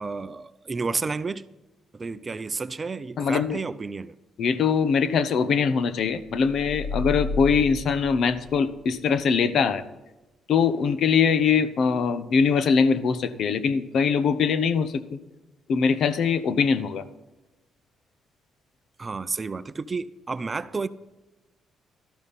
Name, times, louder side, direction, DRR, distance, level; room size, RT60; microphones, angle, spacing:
voice 1, 0.0-1.5 1.9-4.2 19.0-20.9, right 4 dB, 30° right, 0.6 m, -31 dB
voice 2, 3.2-3.6 4.4-9.8 10.5-15.2 15.7-17.0, left 6 dB, 65° left, 1.0 m, -22 dB
sound 1, 6.2-8.9, left 3 dB, 50° left, 2.4 m, -32 dB
13.0 x 12.5 x 4.2 m
cardioid pair, 90°, 0 cm